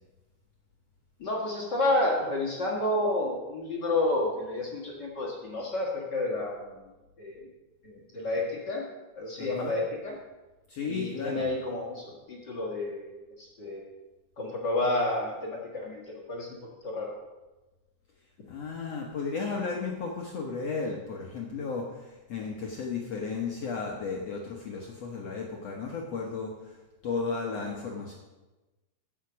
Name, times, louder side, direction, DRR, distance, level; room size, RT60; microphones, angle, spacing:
voice 1, 1.2-6.9 7.2-7.5 7.8-8.9 9.1-10.2 10.9-13.8 14.4-16.5 16.8-17.1, left 2 dB, 65° left, -3 dB, 1.0 m, -30 dB
voice 2, 9.4-9.7 10.7-11.4 18.5-26.8 27.0-28.1, left 4 dB, 80° left, -1 dB, 1.4 m, -34 dB
14.5 x 5.8 x 6.2 m, 1.1 s
omnidirectional pair, 4.6 m